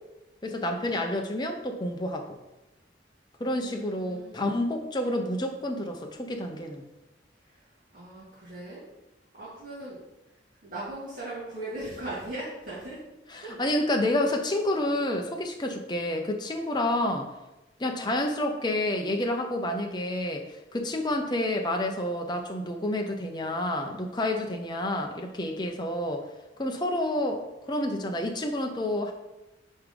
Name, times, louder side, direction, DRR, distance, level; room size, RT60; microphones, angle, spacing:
voice 1, 0.4-2.3 3.4-6.9 13.3-17.3 17.8-26.2 26.6-27.4 27.7-29.1, left 1 dB, 25° left, 3 dB, 0.7 m, -29 dB
voice 2, 3.6-4.5 7.5-7.6 7.9-8.8 9.3-10.0 10.6-13.0 13.4-13.9, right 1 dB, 45° right, -11 dB, 2.2 m, -39 dB
5.4 x 4.7 x 5.2 m, 1.0 s
head